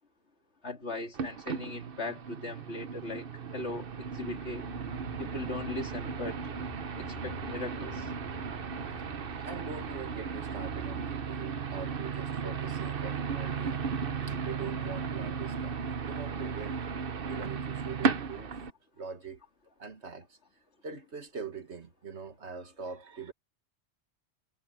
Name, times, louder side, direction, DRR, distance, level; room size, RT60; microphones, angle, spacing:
voice 1, 0.6-4.6 5.2-6.4 7.0-8.1, left 2 dB, 80° left, 3.5 m, -39 dB
sound 1, 1.1-18.7, right 6 dB, 55° right, 1.1 m, -35 dB
sound 2, 4.6-15.5, left 1 dB, 55° left, 5.4 m, -48 dB
voice 2, 9.4-13.9 14.3-16.9 17.3-18.6 19.0-19.4 19.8-20.4 20.8-23.3, right 5 dB, 75° right, 2.2 m, -43 dB
omnidirectional pair, 1.1 m